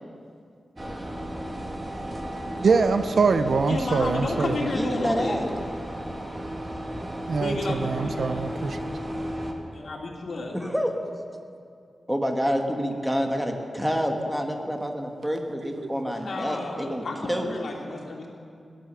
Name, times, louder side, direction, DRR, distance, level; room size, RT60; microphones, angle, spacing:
sound 1, 0.8-9.5, equal, 20° right, 1.6 m, -34 dB
voice 1, 2.6-4.5 7.3-8.8, right 4 dB, 60° right, 9 dB, 0.6 m, -23 dB
voice 2, 3.6-5.4 7.4-8.5 9.7-10.5 16.2-18.3, left 2 dB, 60° left, -1 dB, 2.7 m, -31 dB
voice 3, 4.7-5.5 10.5-10.9 12.1-17.0 17.3-17.5, equal, 5° right, 3 dB, 1.3 m, -28 dB
18.0 x 11.5 x 6.8 m, 2.3 s
wide cardioid pair, 165°, 0 cm